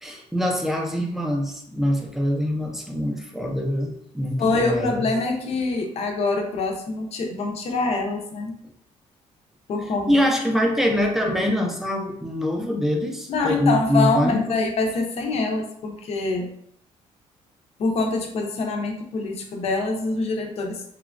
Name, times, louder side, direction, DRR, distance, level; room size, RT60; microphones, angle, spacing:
voice 1, 0.0-5.1 10.1-14.4, equal, 5° right, 1 dB, 0.4 m, -24 dB
voice 2, 4.4-8.5 9.7-10.1 13.3-16.5 17.8-20.8, left 3 dB, 55° left, 3 dB, 0.5 m, -25 dB
2.9 x 2.2 x 2.4 m, 0.70 s
cardioid pair, 135°, 13 cm